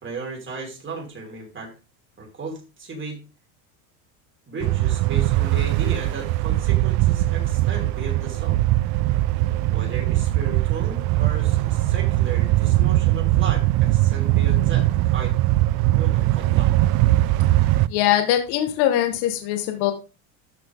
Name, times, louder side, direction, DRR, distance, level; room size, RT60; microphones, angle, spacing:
voice 1, 0.0-1.7 2.2-3.2 4.5-8.6 9.7-15.4 16.0-16.7, right 3 dB, 25° right, 0 dB, 5.6 m, -35 dB
sound 1, 4.6-17.9, right 16 dB, 60° right, 0.7 m, -20 dB
voice 2, 17.9-19.9, left 12 dB, 65° left, 6 dB, 2.0 m, -21 dB
13.0 x 6.7 x 4.0 m, 0.30 s
supercardioid pair, 110°, 43 cm